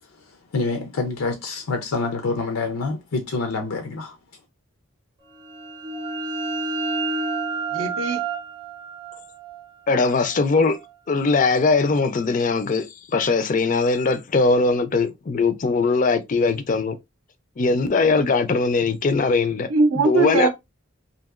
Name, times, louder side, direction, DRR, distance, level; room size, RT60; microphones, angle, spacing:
voice 1, 0.0-4.2, left 3 dB, 85° left, 0.5 m, -27 dB
sound 1, 5.4-10.9, right 3 dB, 25° right, 0.6 m, -30 dB
voice 2, 7.7-8.2 19.7-20.5, right 3 dB, 75° right, 0.5 m, -20 dB
voice 3, 9.9-10.8 11.1-12.9 13.1-17.0 17.6-19.7 20.0-20.5, left 4 dB, 35° left, 0.3 m, -20 dB
2.8 x 2.6 x 2.4 m
head